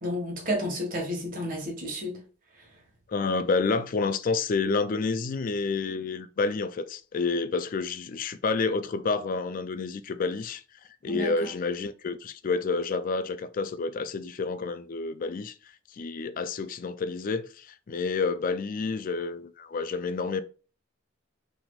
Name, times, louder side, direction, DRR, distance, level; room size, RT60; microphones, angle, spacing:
voice 1, 0.0-2.2 11.1-11.5, equal, 45° right, 1.6 m, -31 dB
voice 2, 3.1-10.6 11.0-15.5 15.9-20.4, left 4 dB, 45° left, 0.4 m, -29 dB
5.9 x 3.5 x 2.4 m
head